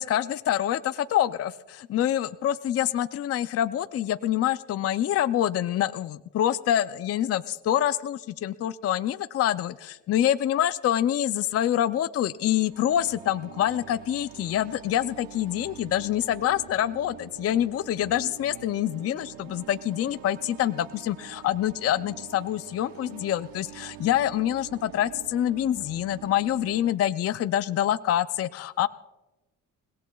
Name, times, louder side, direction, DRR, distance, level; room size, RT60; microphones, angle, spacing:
voice 1, 0.0-28.9, left 11 dB, 45° left, 13 dB, 0.4 m, -26 dB
sound 1, 12.4-26.9, right 13 dB, 85° right, 0.7 m, -46 dB
29.0 x 17.0 x 2.3 m, 1.1 s
cardioid pair, 135°, 33 cm